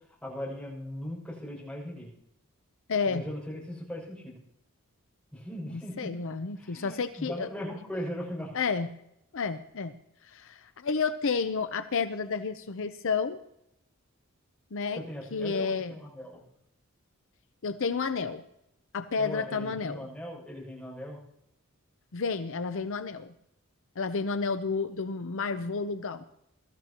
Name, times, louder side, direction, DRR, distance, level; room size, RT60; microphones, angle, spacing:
voice 1, 0.1-2.1 3.1-4.4 5.3-6.1 6.5-8.5 14.9-16.4 19.2-21.2, equal, 5° left, -4 dB, 6.5 m, -39 dB
voice 2, 2.9-3.2 5.7-7.5 8.5-8.9 9.3-9.9 10.2-13.4 14.7-15.0 15.3-15.9 17.6-18.4 18.9-20.1 22.1-23.3 24.0-26.2, left 5 dB, 65° left, 10 dB, 0.7 m, -31 dB
22.5 x 14.0 x 3.0 m, 0.77 s
head